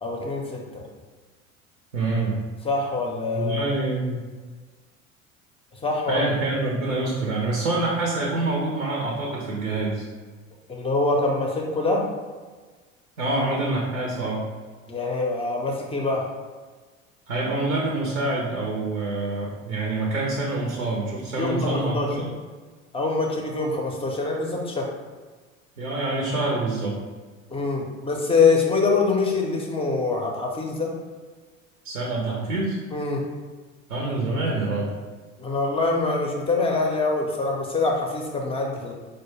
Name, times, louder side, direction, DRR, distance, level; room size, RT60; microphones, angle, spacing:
voice 1, 0.0-0.8 2.6-3.7 5.8-6.3 10.7-12.0 14.9-16.3 21.4-22.3 22.9-24.9 27.5-30.9 32.9-33.2 35.4-38.9, left 3 dB, 15° left, 0 dB, 0.6 m, -24 dB
voice 2, 1.9-2.3 3.3-4.2 6.1-10.0 13.2-14.4 17.3-22.3 25.8-26.9 31.8-32.8 33.9-34.9, right 2 dB, 80° right, -3 dB, 0.8 m, -26 dB
4.4 x 2.2 x 3.1 m, 1.4 s
figure-of-eight pair, 70°, 40 cm